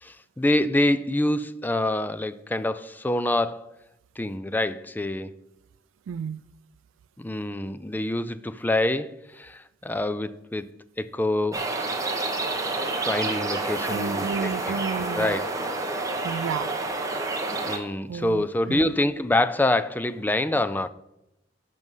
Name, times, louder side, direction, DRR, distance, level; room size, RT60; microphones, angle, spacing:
voice 1, 0.0-3.7 4.2-5.3 7.2-10.7 11.0-11.7 12.9-14.3 14.6-14.7 15.1-15.5 17.7-20.9, left 1 dB, 10° left, 0.4 m, -26 dB
voice 2, 6.1-6.4 13.9-15.3 16.2-16.7 18.1-18.9, right 6 dB, 80° right, 0.3 m, -32 dB
sound 1, 11.5-17.8, right 2 dB, 15° right, 1.2 m, -29 dB
12.5 x 5.3 x 5.4 m
head